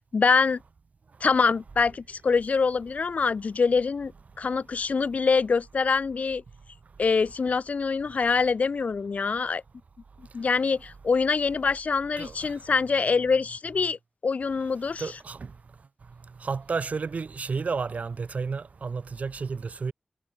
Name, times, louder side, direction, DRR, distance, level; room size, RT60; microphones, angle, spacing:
voice 1, 0.1-0.6 1.2-4.1 4.4-6.4 7.0-9.6 10.3-14.0 14.2-15.1, left 5 dB, 85° left, 1.1 m, -24 dB
voice 2, 15.0-15.4 16.4-19.9, right 5 dB, 85° right, 1.8 m, -31 dB
wide cardioid pair, 70°, 2 cm